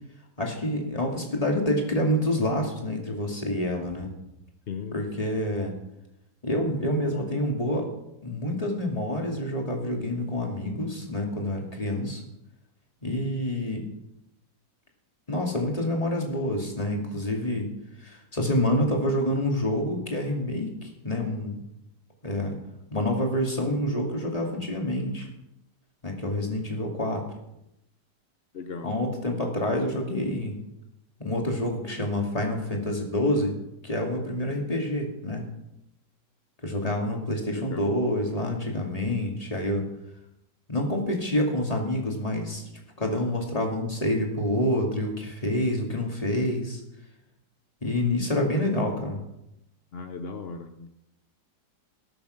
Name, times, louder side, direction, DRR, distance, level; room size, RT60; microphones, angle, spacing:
voice 1, 0.4-4.1 4.9-5.7 6.4-7.9 8.2-12.2 13.0-13.8 15.3-17.7 18.0-21.6 22.2-22.6 22.9-25.3 26.0-27.3 28.8-30.6 31.2-33.5 33.8-35.4 36.6-39.9 40.7-42.7 43.0-46.8 47.8-49.2, left 1 dB, 20° left, 1 dB, 2.7 m, -27 dB
voice 2, 4.7-5.0 28.5-28.9 37.5-37.9 49.9-50.9, left 5 dB, 55° left, 7 dB, 0.7 m, -37 dB
18.0 x 7.1 x 6.5 m, 0.86 s
omnidirectional pair, 1.9 m